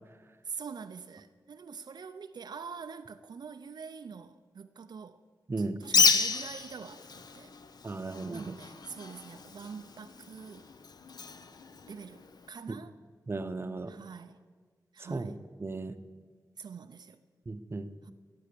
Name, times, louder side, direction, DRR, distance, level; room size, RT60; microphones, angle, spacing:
voice 1, 0.4-5.2 5.8-7.5 8.3-10.7 11.9-12.9 13.9-14.4 14.9-15.3 16.6-17.2 18.1-18.2, right 6 dB, 75° right, 0.5 m, -45 dB
Bird, 5.8-12.5, left 5 dB, 65° left, 0.7 m, -31 dB
voice 2, 7.8-8.6 12.7-12.8 13.3-13.9 15.0-15.3 15.6-16.0 17.5-17.9, right 3 dB, 35° right, 0.7 m, -35 dB
15.5 x 8.6 x 6.8 m
wide cardioid pair, 115°, 7 cm